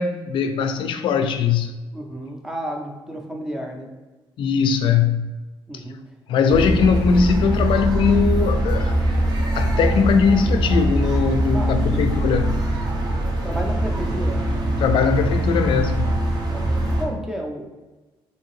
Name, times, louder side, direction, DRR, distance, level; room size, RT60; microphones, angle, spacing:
voice 1, 0.0-1.7 4.4-5.3 5.7-5.8 6.3-9.0 9.5-12.5 14.8-16.1, left 6 dB, 65° left, 0.4 m, -20 dB
voice 2, 1.9-3.9 5.7-6.0 11.5-12.0 13.4-14.4 16.5-17.7, equal, 5° right, 0.5 m, -32 dB
sound 1, 6.5-17.0, right 1 dB, 45° right, 0.8 m, -22 dB
3.6 x 2.7 x 3.1 m
cardioid pair, 150°, 9 cm